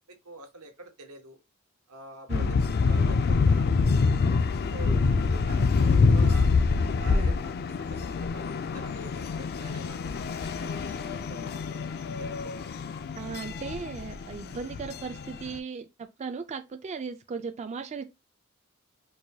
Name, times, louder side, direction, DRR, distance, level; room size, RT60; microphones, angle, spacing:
voice 1, 0.2-1.4 1.9-2.6 2.8-4.9 5.2-6.5 7.0-7.5 7.8-11.8 12.2-12.6, right 2 dB, 90° right, 1.1 m, -46 dB
sound 1, 2.3-15.6, left 4 dB, 45° left, 0.3 m, -26 dB
voice 2, 7.1-7.4 13.2-18.0, right 5 dB, 30° right, 0.3 m, -37 dB
4.6 x 2.2 x 2.6 m
head